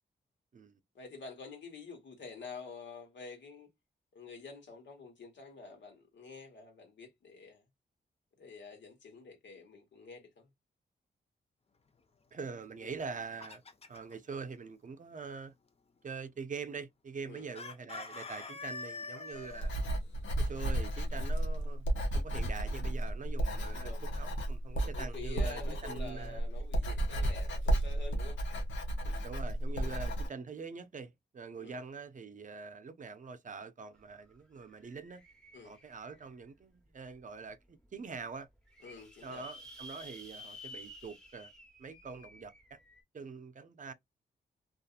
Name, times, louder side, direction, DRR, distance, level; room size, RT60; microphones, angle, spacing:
voice 1, 0.9-3.7 4.1-7.6 8.4-10.5 12.8-13.0 17.2-17.5 23.6-24.0 24.8-28.4 29.8-30.0 31.6-31.8 35.5-35.8 38.8-39.5, left 4 dB, 70° left, 1.3 m, -48 dB
voice 2, 12.3-13.6 13.9-15.5 16.0-19.7 20.4-26.4 29.0-35.2 35.6-38.5 39.2-41.5 41.8-42.8 43.1-43.9, right 5 dB, 45° right, 0.5 m, -44 dB
Chicken rooster, 12.9-14.1 17.5-19.7, left 4 dB, 30° left, 0.6 m, -44 dB
Writing, 19.5-30.3, right 1 dB, 90° left, 0.8 m, -33 dB
sound 1, 34.0-34.1 34.3-36.4 37.0-37.1 37.5-37.6 37.8-37.9 38.4-43.0, left 1 dB, 5° left, 1.0 m, -52 dB
2.6 x 2.4 x 2.4 m
cardioid pair, 55°, 19 cm